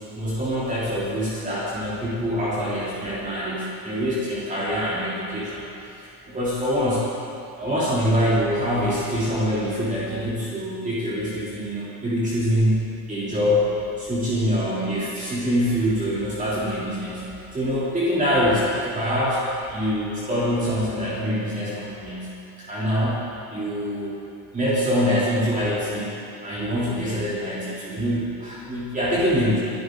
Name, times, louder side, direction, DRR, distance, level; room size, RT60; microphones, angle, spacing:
voice 1, 0.1-5.6 6.3-7.0 7.5-12.8 13.1-13.7 14.0-19.4 19.7-22.3 22.7-23.2 23.5-24.1 24.5-26.1 26.4-29.6, equal, 20° right, -9 dB, 3.3 m, -24 dB
21.5 x 11.0 x 3.9 m, 2.9 s
cardioid pair, 125°, 41 cm